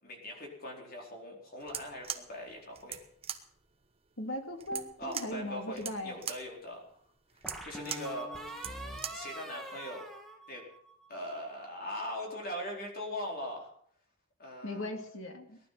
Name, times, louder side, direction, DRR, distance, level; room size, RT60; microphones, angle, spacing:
voice 1, 0.0-3.0 5.0-7.0 7.6-8.3 9.1-10.0 10.5-10.6 11.1-13.7 14.4-14.9, left 1 dB, 50° left, 0 dB, 4.5 m, -41 dB
sound 1, 1.6-9.3, right 8 dB, 30° right, 1.2 m, -42 dB
voice 2, 4.2-6.2 14.6-15.6, left 1 dB, 75° left, 5 dB, 2.2 m, -38 dB
sound 2, 4.7-5.6 7.4-11.1, right 1 dB, ahead, 2.2 m, -44 dB
18.5 x 12.0 x 5.9 m, 0.64 s
head